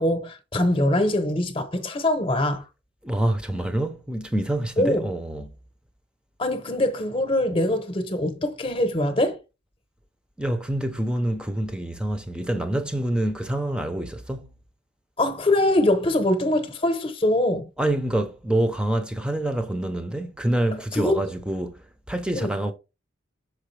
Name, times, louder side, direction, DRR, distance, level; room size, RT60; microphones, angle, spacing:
voice 1, 0.0-2.6 4.8-5.1 6.4-9.4 15.2-17.7 20.9-21.2 22.3-22.5, left 1 dB, 25° left, 0.9 m, -23 dB
voice 2, 3.0-5.5 10.4-14.6 17.8-22.7, right 1 dB, 5° right, 0.6 m, -26 dB
6.3 x 4.8 x 3.2 m
head